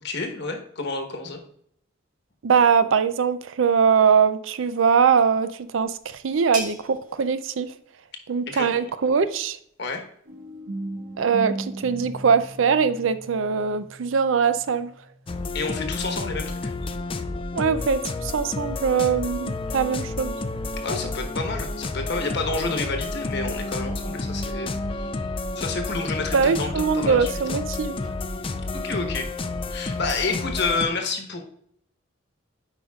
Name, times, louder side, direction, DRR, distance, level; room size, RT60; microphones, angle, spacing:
voice 1, 0.0-1.4 8.5-8.8 9.8-10.1 15.5-17.0 20.8-25.1 25.6-27.6 28.7-29.3 29.7-31.4, left 3 dB, 55° left, 4 dB, 1.2 m, -29 dB
voice 2, 2.4-7.7 8.3-9.6 11.2-14.9 17.5-20.3 26.3-28.0, right 6 dB, 70° right, 13 dB, 0.4 m, -22 dB
sound 1, 5.2-10.6, right 3 dB, 40° right, 1.1 m, -42 dB
sound 2, 10.3-16.1, right 1 dB, 90° right, 1.5 m, -38 dB
sound 3, 15.3-30.9, left 2 dB, 25° left, 0.4 m, -30 dB
9.1 x 5.1 x 2.3 m, 0.66 s
head